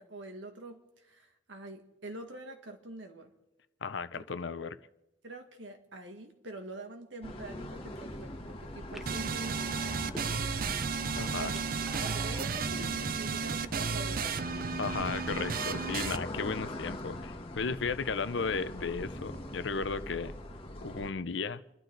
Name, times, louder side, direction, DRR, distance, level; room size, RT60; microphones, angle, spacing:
voice 1, 0.0-3.3 4.1-4.5 5.2-11.6 12.0-14.5, right 1 dB, 80° right, 1.9 m, -46 dB
voice 2, 3.8-4.8 11.1-11.5 14.8-20.3 20.8-21.6, left 5 dB, 75° left, 0.7 m, -35 dB
sound 1, 7.2-21.1, left 1 dB, 30° left, 1.6 m, -42 dB
sound 2, 7.8-8.2 8.8-10.6 10.9-12.6, equal, ahead, 0.7 m, -49 dB
sound 3, 9.1-16.2, right 5 dB, 50° right, 0.5 m, -33 dB
29.0 x 12.0 x 3.9 m
head